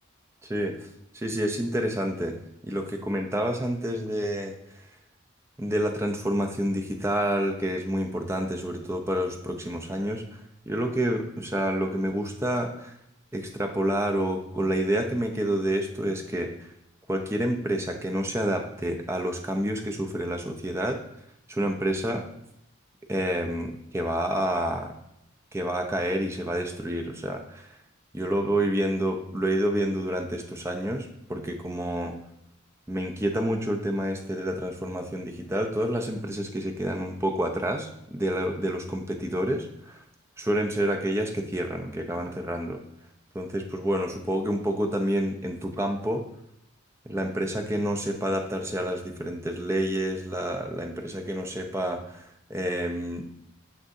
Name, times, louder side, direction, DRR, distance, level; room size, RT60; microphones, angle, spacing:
voice 1, 0.5-0.9 1.1-2.4 2.6-4.5 5.6-10.4 10.7-12.9 13.3-16.5 17.1-21.0 21.5-22.2 23.1-24.9 25.5-27.8 28.1-32.2 32.9-40.0 40.4-42.8 43.3-46.2 47.1-53.2, right 1 dB, 15° right, 3 dB, 0.5 m, -28 dB
6.7 x 6.2 x 2.7 m, 0.78 s
head